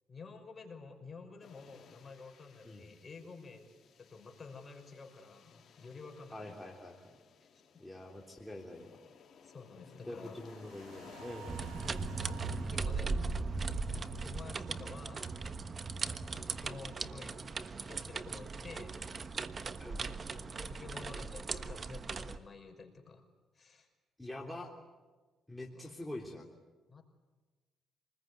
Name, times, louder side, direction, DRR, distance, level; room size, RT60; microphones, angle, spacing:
voice 1, 0.1-3.7 4.0-6.6 7.4-7.6 9.4-10.4 12.1-13.1 14.2-15.4 16.4-19.0 20.3-23.2 23.5-23.9 25.7-25.9 26.9-27.0, left 4 dB, 35° left, 3 dB, 5.4 m, -51 dB
sound 1, 1.4-14.2, left 6 dB, 55° left, 3.6 m, -59 dB
voice 2, 6.3-7.1 7.8-9.0 10.0-11.5 19.8-20.1 24.2-24.7 25.5-26.5, left 1 dB, 5° left, -1 dB, 3.4 m, -45 dB
sound 2, 10.3-16.7 17.0-17.1, right 4 dB, 90° right, 3.0 m, -50 dB
sound 3, 11.5-22.4, right 4 dB, 40° right, 1.3 m, -38 dB
27.0 x 21.0 x 9.6 m, 1.3 s
cardioid pair, 90°, 0 cm